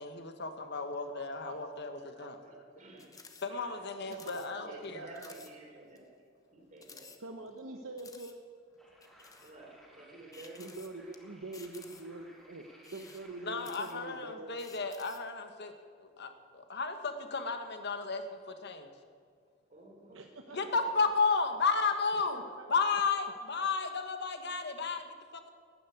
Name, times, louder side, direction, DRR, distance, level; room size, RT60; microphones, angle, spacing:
voice 1, 0.0-2.4 3.4-5.0 13.4-15.7 16.0-18.9 20.5-25.5, left 4 dB, 55° left, 7 dB, 1.4 m, -33 dB
voice 2, 1.1-3.1 3.5-3.8 4.1-5.8 7.2-8.4 10.6-12.7 12.9-14.6 20.1-20.6 22.3-22.7, right 2 dB, 70° right, 4 dB, 1.0 m, -46 dB
voice 3, 2.4-3.3 4.6-6.1 6.5-7.1 7.6-7.8 9.4-10.7 19.7-20.2 20.5-20.8, right 2 dB, 40° right, -1 dB, 4.0 m, -52 dB
sound 1, 3.0-3.5 3.7-3.8 4.1-4.5 4.8-4.9 5.1-5.5 6.0-6.1 6.8-7.6 8.0-8.3 9.0-9.6 10.3-11.2 11.5-12.2 12.7-14.2 14.6-15.3, left 5 dB, 15° left, 1.0 m, -54 dB
sound 2, 8.8-14.1, equal, ahead, 3.2 m, -60 dB
12.0 x 10.5 x 9.5 m, 2.1 s
head